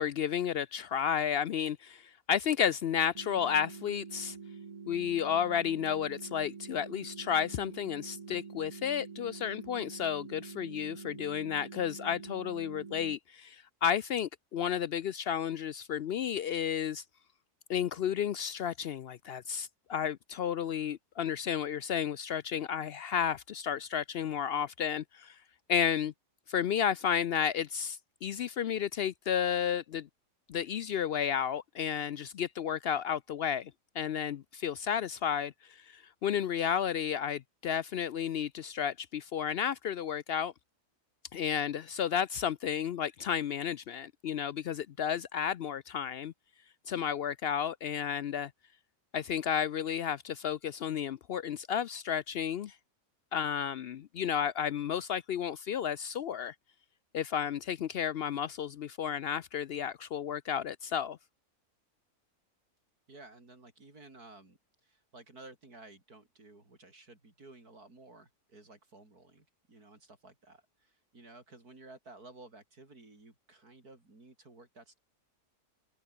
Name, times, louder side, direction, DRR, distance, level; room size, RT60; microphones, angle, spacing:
voice 1, 0.0-4.4 4.9-17.0 17.7-25.4 25.7-26.1 26.5-30.1 30.5-40.5 41.3-46.3 46.9-48.5 49.1-52.8 53.3-56.5 57.1-61.2, left 8 dB, 75° left, 0.5 m, -32 dB
sound 1, 3.1-13.2, right 5 dB, 30° right, 0.7 m, -46 dB
voice 2, 63.1-75.0, right 2 dB, 70° right, 5.9 m, -54 dB
omnidirectional pair, 1.6 m